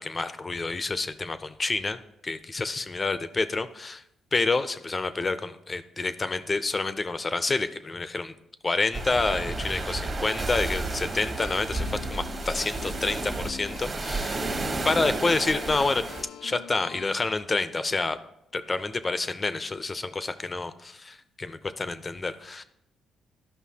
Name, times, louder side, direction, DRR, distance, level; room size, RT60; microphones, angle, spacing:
voice 1, 0.0-4.0 4.3-8.3 8.6-14.4 14.8-16.0 16.4-18.2 18.5-22.6, left 3 dB, 30° left, 12 dB, 0.6 m, -28 dB
sound 1, 8.9-16.2, right 2 dB, 35° right, 1.2 m, -32 dB
sound 2, 11.3-17.1, left 8 dB, 80° left, 0.3 m, -43 dB
13.0 x 5.6 x 2.8 m, 0.82 s
cardioid pair, 90°, 0 cm